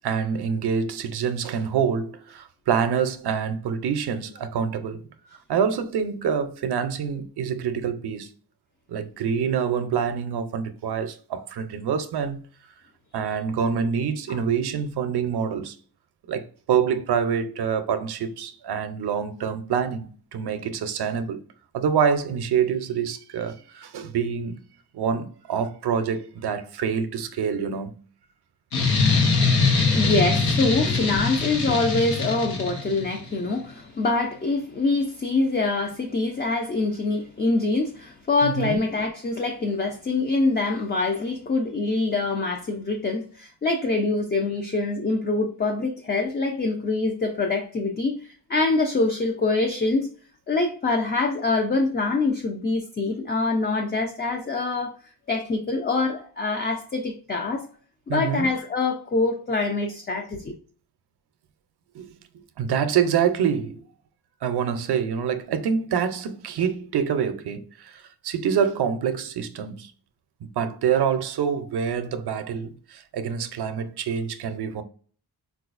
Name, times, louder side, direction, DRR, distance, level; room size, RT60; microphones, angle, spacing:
voice 1, 0.0-5.1 5.5-8.3 8.9-12.4 13.1-15.8 16.3-21.4 21.7-24.6 24.9-28.0 38.4-38.8 58.1-58.5 61.9-62.1 62.6-63.8 64.4-69.9 70.4-74.8, right 7 dB, 80° right, 0.6 m, -26 dB
sound 1, 28.7-33.2, left 4 dB, 80° left, 1.0 m, -22 dB
voice 2, 29.7-50.1 50.5-54.9 55.3-57.7 58.1-60.5, left 3 dB, 25° left, 0.4 m, -25 dB
3.9 x 2.4 x 2.4 m
wide cardioid pair, 115°, 38 cm